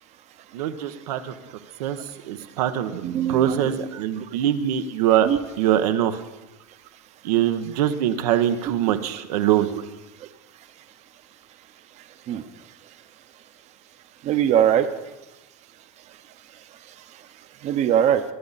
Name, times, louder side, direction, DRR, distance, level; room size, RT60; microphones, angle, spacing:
voice 1, 0.5-1.3 1.8-2.0 2.3-3.0 3.3-5.3 5.6-6.2 7.2-9.7, right 11 dB, 90° right, 8 dB, 1.1 m, -23 dB
voice 2, 2.9-4.3 5.2-5.4 8.6-9.2 9.7-9.8 10.2-10.3 12.3-12.4 14.2-14.9 17.6-18.2, right 10 dB, 35° right, 10 dB, 0.9 m, -23 dB
23.5 x 8.8 x 4.1 m, 1.0 s
supercardioid pair, 145°, 19 cm